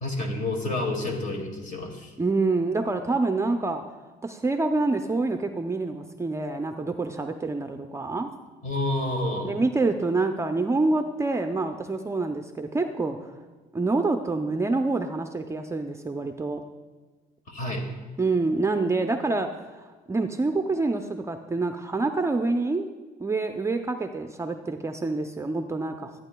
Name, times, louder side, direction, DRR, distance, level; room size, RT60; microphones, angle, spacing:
voice 1, 0.0-2.1 8.6-9.6 17.5-17.8, left 2 dB, 50° left, 2 dB, 2.1 m, -29 dB
voice 2, 2.2-3.8 4.2-8.3 9.4-13.2 13.7-16.6 18.2-22.9 23.2-26.2, right 3 dB, 15° right, 6 dB, 0.5 m, -27 dB
13.5 x 9.0 x 2.2 m, 1.4 s
cardioid pair, 110°, 17 cm